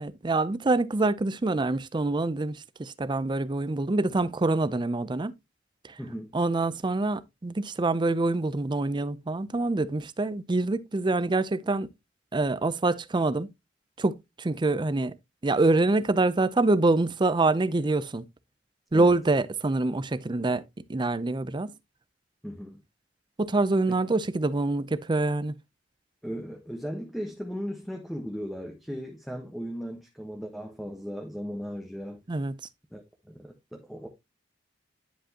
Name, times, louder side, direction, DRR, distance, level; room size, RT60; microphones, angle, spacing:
voice 1, 0.0-5.3 5.8-5.9 6.3-11.9 12.3-13.5 14.0-15.2 15.4-18.2 18.9-20.6 20.9-21.7 23.4-25.5 32.3-32.6, right 2 dB, 25° right, 0.5 m, -25 dB
voice 2, 6.0-6.3 18.9-19.2 22.4-22.8 26.2-32.2 32.9-33.0 33.3-34.1, equal, ahead, 1.1 m, -37 dB
10.0 x 5.1 x 2.8 m
head